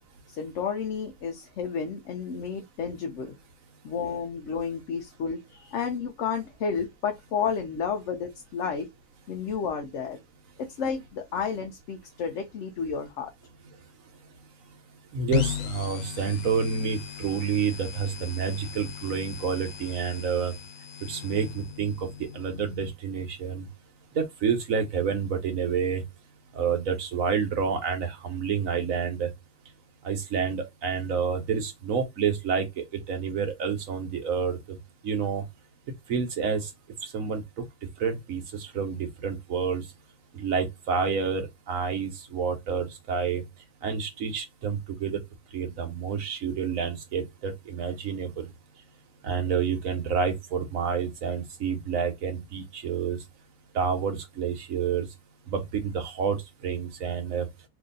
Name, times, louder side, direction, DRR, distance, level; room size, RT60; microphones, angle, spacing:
voice 1, 0.3-3.3 3.8-8.9 9.3-10.2 10.6-13.3, left 6 dB, 65° left, 0.9 m, -31 dB
voice 2, 15.1-20.5 21.1-22.1 22.3-23.7 24.1-26.0 26.5-29.3 30.0-34.6 35.0-35.4 36.1-36.7 37.0-37.4 38.0-39.8 40.3-43.4 43.8-45.2 45.5-48.5 49.2-53.2 53.7-55.1 55.5-56.4 56.6-57.5, right 6 dB, 70° right, 1.3 m, -29 dB
sound 1, 15.3-22.9, left 8 dB, 85° left, 1.2 m, -37 dB
3.0 x 2.6 x 3.9 m
omnidirectional pair, 1.5 m